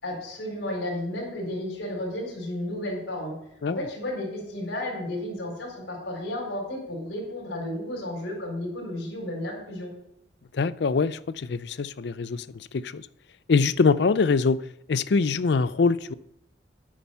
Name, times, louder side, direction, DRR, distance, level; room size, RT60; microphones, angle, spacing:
voice 1, 0.0-3.3 3.7-9.9, left 1 dB, 90° left, 4.4 m, -33 dB
voice 2, 10.5-13.1 13.5-14.6 14.9-16.1, left 4 dB, 65° left, 0.4 m, -24 dB
10.5 x 8.6 x 5.7 m
head